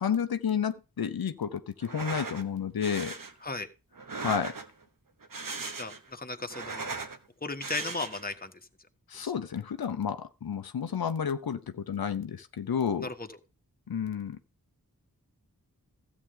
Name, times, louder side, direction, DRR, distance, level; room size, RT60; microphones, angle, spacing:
voice 1, 0.0-3.1 4.2-4.6 9.1-13.1 13.9-14.4, left 7 dB, 80° left, 0.8 m, -31 dB
sound 1, 1.8-2.4 2.8-3.3 3.9-4.8 5.2-6.1 6.4-7.2 7.6-8.3, right 4 dB, 65° right, 1.4 m, -38 dB
voice 2, 5.8-6.9 7.4-8.5 9.2-9.3 13.0-13.3, left 3 dB, 25° left, 1.4 m, -36 dB
13.5 x 7.9 x 3.8 m
cardioid pair, 40°, 36 cm